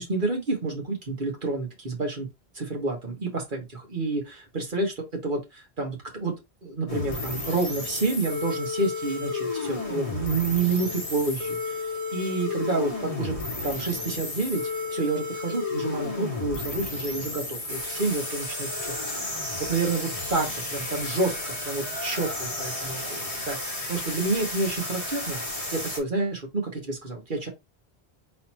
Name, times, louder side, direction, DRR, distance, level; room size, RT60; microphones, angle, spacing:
voice 1, 0.0-2.3 2.5-6.3 6.6-11.9 12.1-13.3 13.6-14.6 14.9-19.0 19.7-23.0 23.3-25.4 25.7-27.5, right 3 dB, 50° right, 1.7 m, -29 dB
sound 1, 6.9-26.0, left 2 dB, 30° left, 2.2 m, -32 dB
4.1 x 4.1 x 2.9 m
omnidirectional pair, 1.1 m